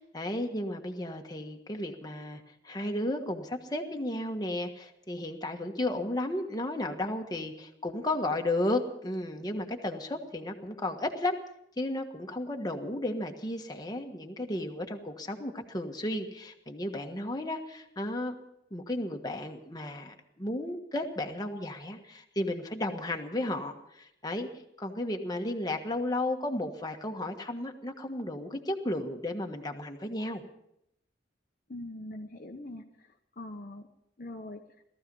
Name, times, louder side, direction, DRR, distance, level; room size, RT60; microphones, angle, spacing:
voice 1, 0.0-11.4 11.8-18.3 18.7-24.5 24.8-30.4, left 1 dB, 20° left, 3 dB, 1.4 m, -34 dB
voice 2, 31.7-33.9 34.2-34.6, left 1 dB, 50° left, 3 dB, 1.0 m, -42 dB
18.0 x 14.5 x 5.4 m, 0.78 s
head